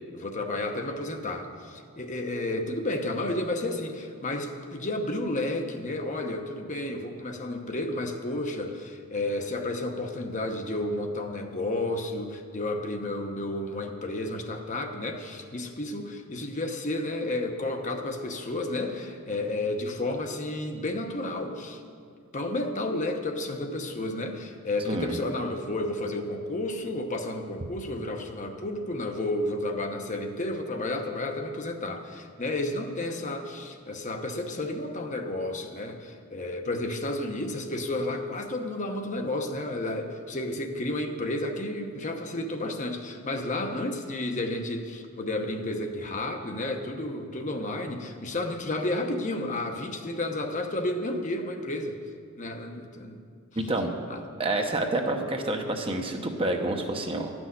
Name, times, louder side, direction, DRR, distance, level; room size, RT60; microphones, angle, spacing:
voice 1, 0.1-21.8 22.3-52.0 52.4-53.2 54.1-54.2, left 2 dB, 35° left, 4 dB, 0.9 m, -31 dB
voice 2, 24.8-25.2 53.6-53.9 54.4-57.3, right 2 dB, 25° right, 3 dB, 0.9 m, -28 dB
12.5 x 6.2 x 9.5 m, 2.2 s
head